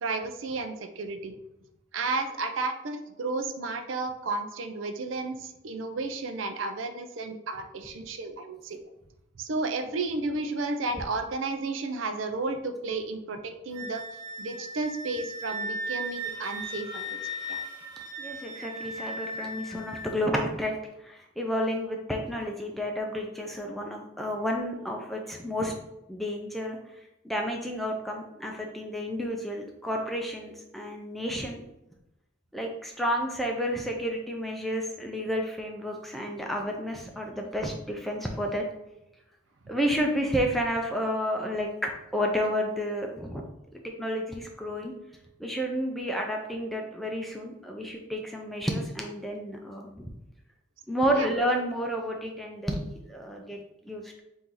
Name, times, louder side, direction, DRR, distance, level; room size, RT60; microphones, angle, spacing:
voice 1, 0.0-1.4 1.9-8.8 9.4-14.0 14.4-17.6 51.2-51.3, right 3 dB, 75° right, 7 dB, 0.5 m, -32 dB
Wind instrument woodwind instrument, 13.7-20.1, equal, 20° right, 0.9 m, -37 dB
voice 2, 18.2-20.7 21.0-25.7 26.1-26.8 27.2-31.6 32.5-38.6 39.7-43.4 43.7-44.9 45.4-50.1 50.9-54.2, equal, ahead, 1 dB, 0.4 m, -31 dB
4.4 x 2.6 x 3.8 m, 0.89 s
head